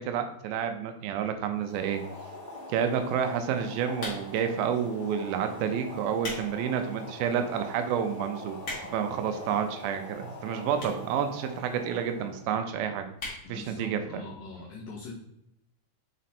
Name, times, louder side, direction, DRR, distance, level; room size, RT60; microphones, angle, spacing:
voice 1, 0.0-2.0 2.7-8.6 8.9-13.1 13.5-14.2, right 8 dB, 80° right, 7 dB, 2.2 m, -29 dB
Boiling, 1.5-12.5, left 2 dB, 5° left, 1.2 m, -43 dB
sound 1, 3.9-4.5 5.2-5.4 5.9-6.5 6.9-7.0 7.6-7.7 7.9-8.0 8.3-9.1 9.9-10.0 10.7-11.1 11.4-11.5 11.7-11.8 12.0-12.1 12.4-12.7 13.1-13.4 13.8-13.9 14.1-14.2, left 2 dB, 45° left, 1.1 m, -38 dB
voice 2, 13.4-15.1, left 3 dB, 75° left, -2 dB, 2.2 m, -42 dB
6.2 x 4.2 x 4.2 m, 0.79 s
omnidirectional pair, 4.7 m